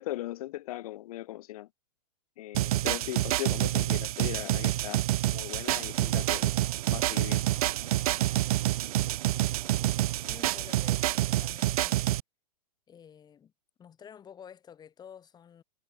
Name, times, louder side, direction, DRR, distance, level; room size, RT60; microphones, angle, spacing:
voice 1, 0.0-1.7 2.4-6.5 6.9-7.4, left 15 dB, 60° left, 4.7 m, -38 dB
sound 1, 2.5-12.2, right 15 dB, 60° right, 0.9 m, -28 dB
sound 2, 5.7-11.5, right 10 dB, 80° right, 1.2 m, -46 dB
sound 3, 5.9-11.4, right 10 dB, 25° right, 6.5 m, -60 dB
voice 2, 9.0-12.2 12.9-13.5 13.8-15.6, left 8 dB, 20° left, 4.0 m, -51 dB
hypercardioid pair, 135°, 21 cm